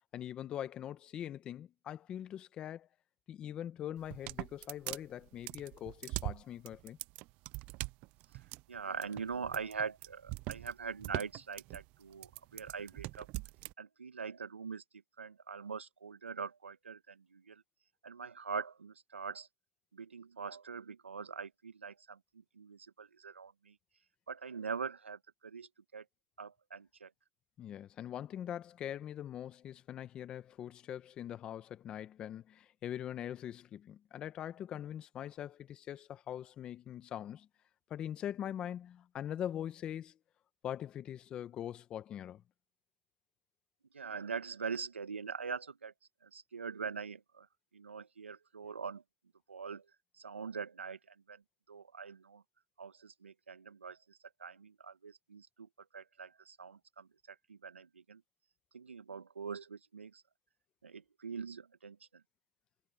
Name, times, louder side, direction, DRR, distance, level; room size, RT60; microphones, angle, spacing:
voice 1, 0.1-2.9 3.3-7.0 27.6-37.5 37.9-40.2 40.6-42.4, left 10 dB, 15° left, 1.2 m, -42 dB
sound 1, 4.0-13.7, right 23 dB, 20° right, 0.4 m, -42 dB
voice 2, 8.7-13.3 13.8-17.6 18.0-19.5 19.9-23.8 24.3-26.0 26.4-27.1 43.9-45.9 46.2-47.5 47.7-49.0 49.5-49.8 50.2-51.4 51.7-52.4 52.8-58.2 58.7-60.2 60.8-62.2, right 5 dB, 90° right, 1.6 m, -43 dB
hypercardioid pair, 155°, 6 cm